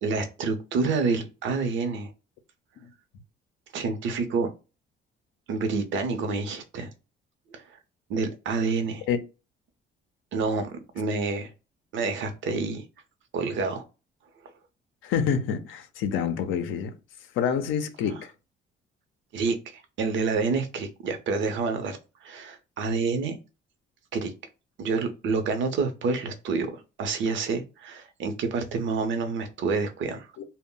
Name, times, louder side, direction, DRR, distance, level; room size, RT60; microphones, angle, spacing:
voice 1, 0.0-2.1 3.7-4.5 5.5-6.9 7.5-7.6 8.1-9.0 10.3-11.5 11.9-12.8 13.3-13.8 19.3-23.4 24.1-24.3 24.8-30.3, right 4 dB, 70° right, 0.6 m, -28 dB
voice 2, 15.0-16.9 17.4-18.3 30.4-30.5, left 7 dB, 85° left, 0.5 m, -27 dB
2.1 x 2.0 x 3.7 m
cardioid pair, 90°, 20 cm